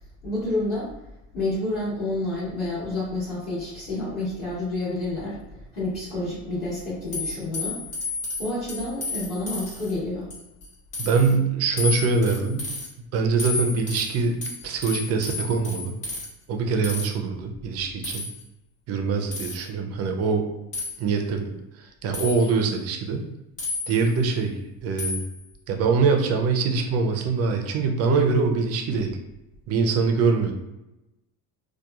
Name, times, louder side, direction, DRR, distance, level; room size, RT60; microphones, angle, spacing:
voice 1, 0.2-0.9 1.3-7.8 8.4-10.3, left 2 dB, 35° left, -9 dB, 1.2 m, -29 dB
sound 1, 7.1-9.9 10.3-10.7 10.9-11.3 11.8-12.9 13.4-16.3 16.8-17.1 18.0-18.4 19.3-19.7 20.7-21.0 22.1-22.6 23.6-24.2 25.0-25.4, left 3 dB, 80° left, 1.5 m, -32 dB
voice 2, 11.0-12.6 13.1-14.4 14.6-16.0 16.5-18.2 18.9-20.5 21.0-23.3 23.9-25.2 25.7-29.1 29.7-30.5, right 4 dB, 40° right, 4 dB, 0.4 m, -23 dB
2.8 x 2.2 x 2.3 m, 0.93 s
supercardioid pair, 110°, 42 cm